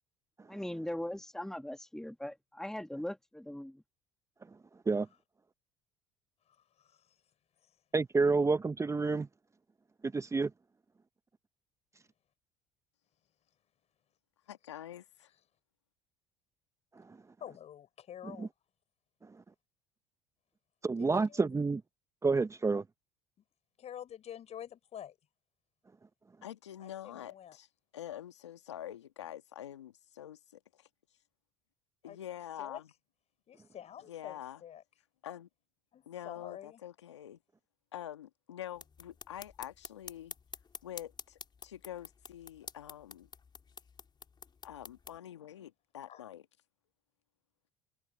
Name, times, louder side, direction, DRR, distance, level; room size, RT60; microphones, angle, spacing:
voice 1, 0.5-3.8, left 1 dB, 5° left, 1.8 m, -40 dB
voice 2, 6.5-7.2 7.6-7.7 17.4-18.5 21.0-21.6 23.8-25.2 26.8-27.6 32.0-32.2 32.6-32.8 33.5-34.8 35.9-36.8 46.1-46.2, left 10 dB, 50° left, 6.6 m, -48 dB
voice 3, 7.9-9.3 10.1-10.5 18.4-18.5 20.8-21.8 22.2-22.8, right 4 dB, 20° right, 1.0 m, -28 dB
voice 4, 14.5-15.3 26.4-27.7 27.9-30.9 32.0-32.9 34.1-34.6 35.2-35.5 36.1-37.4 37.9-40.3 40.8-43.3 44.6-46.4, left 11 dB, 90° left, 1.7 m, -46 dB
sound 1, 38.7-45.2, left 5 dB, 30° left, 3.6 m, -49 dB
hypercardioid pair, 65°, 14 cm